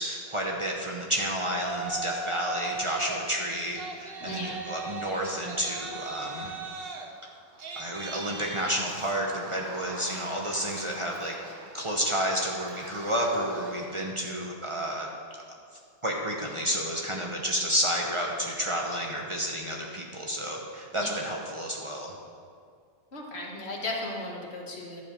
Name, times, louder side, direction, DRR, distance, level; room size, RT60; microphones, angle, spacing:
voice 1, 0.0-6.5 7.8-11.3 11.7-15.1 16.0-22.1, equal, 30° right, -1 dB, 0.9 m, -30 dB
Yell, 1.6-3.2 3.6-14.0, right 3 dB, 60° right, 1.0 m, -39 dB
voice 2, 4.2-4.6 21.0-21.1 23.1-25.0, left 2 dB, 65° left, -1 dB, 1.7 m, -35 dB
11.5 x 4.6 x 6.9 m, 2.2 s
omnidirectional pair, 1.2 m